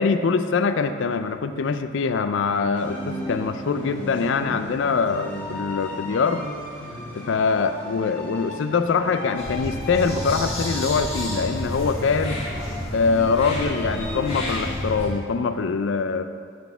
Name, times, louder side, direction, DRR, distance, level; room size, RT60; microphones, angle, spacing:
voice 1, 0.0-6.4 7.1-12.4 12.9-16.2, left 5 dB, 60° left, 10 dB, 0.4 m, -23 dB
sound 1, 2.7-15.2, left 1 dB, 10° left, 1.4 m, -36 dB
sound 2, 9.4-15.1, left 1 dB, 30° left, 2.2 m, -30 dB
11.5 x 4.1 x 4.5 m, 2.2 s
head